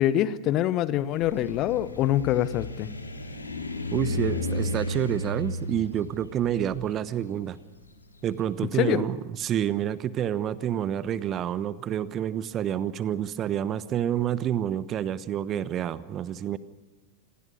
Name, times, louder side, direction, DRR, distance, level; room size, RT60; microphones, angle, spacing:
voice 1, 0.0-2.9 8.7-9.1, left 12 dB, 35° left, 15 dB, 1.2 m, -25 dB
sound 1, 1.1-8.3, left 2 dB, 80° left, 3.0 m, -33 dB
voice 2, 3.9-7.6 8.2-16.6, right 10 dB, 30° right, 17 dB, 1.0 m, -28 dB
27.5 x 20.0 x 6.5 m, 1.2 s
figure-of-eight pair, 90°, 0 cm